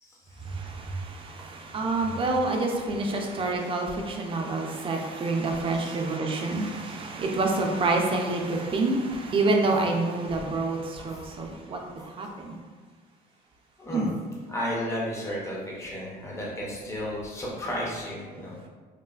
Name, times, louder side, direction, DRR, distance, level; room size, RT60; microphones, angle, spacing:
voice 1, 0.5-11.8 12.2-12.6 13.9-14.1, right 2 dB, 30° right, 2 dB, 0.4 m, -27 dB
voice 2, 6.3-6.9 13.8-14.1 14.5-18.7, equal, 15° left, -5 dB, 0.6 m, -34 dB
3.1 x 2.1 x 2.3 m, 1.5 s
cardioid pair, 110°, 17 cm